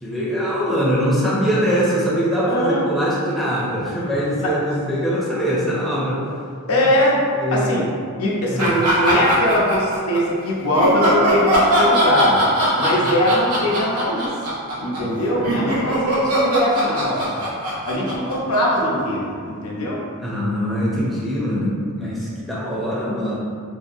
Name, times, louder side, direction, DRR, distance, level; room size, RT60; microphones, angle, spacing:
voice 1, 0.0-6.2 7.3-7.7 8.5-8.7 15.0-15.1 15.4-15.7 20.2-23.4, equal, ahead, -8 dB, 0.4 m, -22 dB
voice 2, 2.4-2.9 4.3-4.5 6.7-7.2 7.5-7.9 8.2-12.4 12.7-14.3 14.8-17.3 17.8-20.0, left 1 dB, 75° left, -4 dB, 0.6 m, -21 dB
sound 1, 8.6-10.2 10.7-19.0, right 1 dB, 80° right, 0.7 m, -20 dB
2.7 x 2.3 x 2.5 m, 2.2 s
head